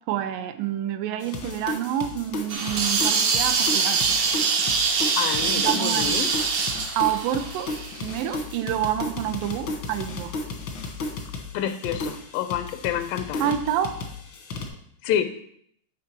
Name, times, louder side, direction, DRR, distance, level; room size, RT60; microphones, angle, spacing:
voice 1, 0.1-4.0 5.5-6.3 7.0-10.3 13.4-13.9, right 11 dB, 85° right, 8 dB, 2.3 m, -28 dB
sound 1, 1.2-14.7, left 3 dB, 70° left, 1.1 m, -34 dB
sound 2, 2.5-8.3, right 5 dB, 65° right, 1.5 m, -24 dB
voice 2, 5.2-6.3 11.5-13.6 15.0-15.2, left 10 dB, 90° left, 9 dB, 2.3 m, -28 dB
9.3 x 3.6 x 5.8 m, 0.69 s
omnidirectional pair, 3.8 m